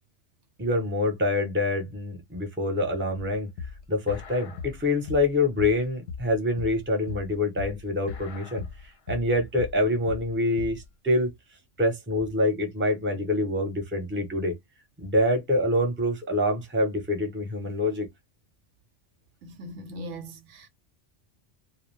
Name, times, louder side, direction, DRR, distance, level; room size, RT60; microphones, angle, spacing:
voice 1, 0.6-3.5 3.9-8.6 9.1-11.3 11.8-14.5 15.0-18.1, left 1 dB, 10° right, 0.7 m, -26 dB
sound 1, 3.1-10.9, left 5 dB, 60° left, 0.8 m, -39 dB
voice 2, 19.4-20.7, right 1 dB, 70° right, 0.9 m, -40 dB
2.4 x 2.2 x 3.2 m
omnidirectional pair, 1.3 m